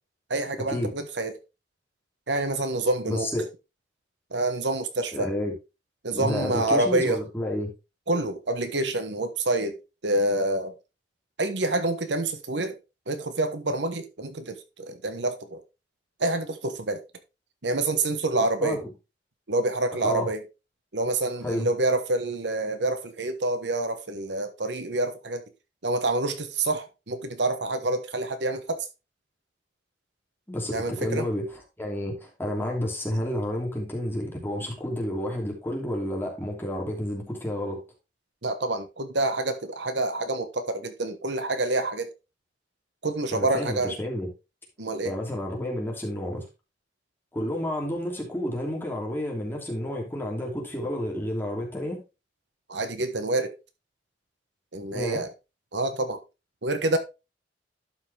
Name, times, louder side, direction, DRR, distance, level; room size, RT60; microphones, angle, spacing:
voice 1, 0.3-1.4 2.3-3.5 4.3-5.3 6.0-7.2 8.1-10.7 11.4-12.8 13.1-15.6 16.2-17.0 17.6-18.8 19.5-20.5 20.9-25.4 25.8-28.9 30.7-31.3 38.4-42.1 43.0-44.0 44.8-45.1 52.7-53.5 54.7-55.3 55.7-56.2 56.6-57.0, right 2 dB, 70° right, 1.3 m, -27 dB
voice 2, 3.1-3.5 5.1-5.5 6.1-7.7 18.6-18.9 20.0-20.3 21.4-21.7 30.5-37.8 43.3-44.3 45.0-46.5 47.3-52.0 54.9-55.3, left 1 dB, 10° left, 2.8 m, -30 dB
11.5 x 5.8 x 3.4 m
head